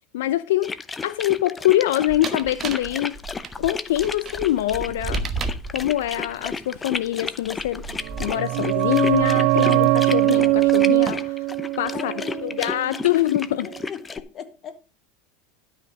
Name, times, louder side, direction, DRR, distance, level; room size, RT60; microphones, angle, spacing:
voice 1, 0.1-0.7 1.0-3.2 3.6-5.2 5.7-7.8 8.2-11.4 11.8-12.1 12.4-13.7, left 14 dB, 75° left, 0.5 m, -24 dB
sound 1, 0.6-14.2, left 4 dB, 20° left, 0.7 m, -33 dB
sound 2, 2.1-9.8 10.6-11.1, right 4 dB, 30° right, 1.2 m, -34 dB
sound 3, 8.0-13.4 13.7-13.8, right 21 dB, 55° right, 0.4 m, -22 dB
voice 2, 11.9-12.6 12.9-13.1 13.6-14.8, left 8 dB, 35° left, 1.6 m, -38 dB
12.5 x 5.8 x 5.1 m
hypercardioid pair, 100°, 0 cm